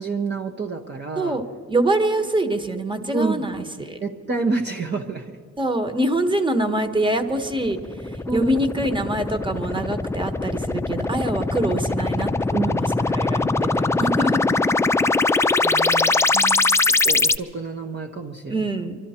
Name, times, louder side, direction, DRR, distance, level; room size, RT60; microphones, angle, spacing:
voice 1, 0.0-1.4 3.1-3.5 4.0-5.4 8.3-8.6 12.5-13.0 15.6-16.1 17.0-18.6, right 3 dB, 35° right, 2 dB, 0.9 m, -28 dB
voice 2, 1.7-4.0 5.6-7.8 8.3-12.9 13.1-14.4 16.3-16.6 18.5-19.0, right 1 dB, 15° right, 9 dB, 1.3 m, -24 dB
sound 1, 7.6-17.4, left 3 dB, 10° left, 0.4 m, -22 dB
24.5 x 13.0 x 4.4 m, 2.1 s
cardioid pair, 90°, 30 cm